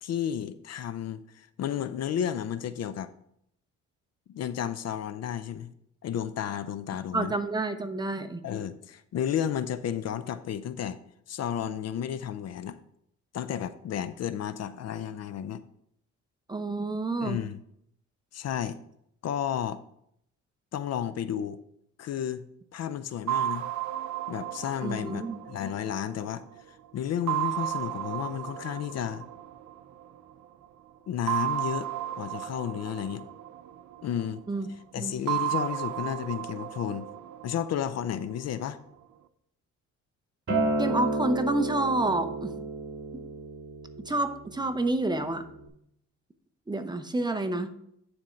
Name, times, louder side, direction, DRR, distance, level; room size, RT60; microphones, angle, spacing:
voice 1, 0.0-3.1 4.3-5.7 6.0-7.3 8.4-11.0 11.3-12.8 13.3-15.6 17.2-17.6 18.3-18.8 19.2-19.8 20.7-21.6 22.0-22.4 22.7-23.7 24.3-29.3 31.1-31.9 32.2-33.3 34.0-34.4 34.9-37.1 37.4-38.8, left 9 dB, 60° left, 13 dB, 0.5 m, -32 dB
voice 2, 7.1-8.4 16.5-17.4 24.8-25.4 34.5-34.7 35.0-35.1 40.8-42.5 44.1-45.5 46.7-47.7, right 2 dB, 15° right, 8 dB, 0.8 m, -29 dB
sound 1, 23.3-26.6 27.3-30.2 31.3-34.4 35.3-38.4, right 13 dB, 75° right, 0.7 m, -34 dB
Acoustic guitar, 40.5-45.7, right 2 dB, 40° right, 2.2 m, -32 dB
9.6 x 4.4 x 5.1 m, 0.73 s
cardioid pair, 90°, 30 cm